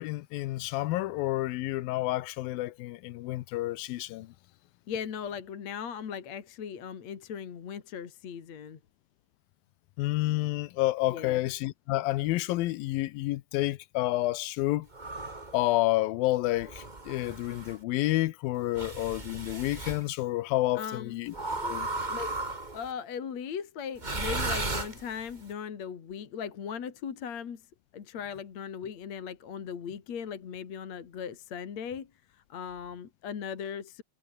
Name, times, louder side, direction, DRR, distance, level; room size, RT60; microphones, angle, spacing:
voice 1, 0.0-4.3 10.0-14.9 15.5-21.3 21.6-21.9, left 17 dB, 85° left, 2.6 m, -29 dB
voice 2, 4.9-8.8 11.1-11.4 20.8-21.2 22.1-22.4 22.7-27.6 27.9-34.0, left 7 dB, 50° left, 3.4 m, -38 dB
sound 1, 14.9-15.6 16.6-17.8 18.7-20.0 21.3-22.9 24.0-25.4, right 2 dB, 15° right, 2.1 m, -35 dB
omnidirectional pair, 4.1 m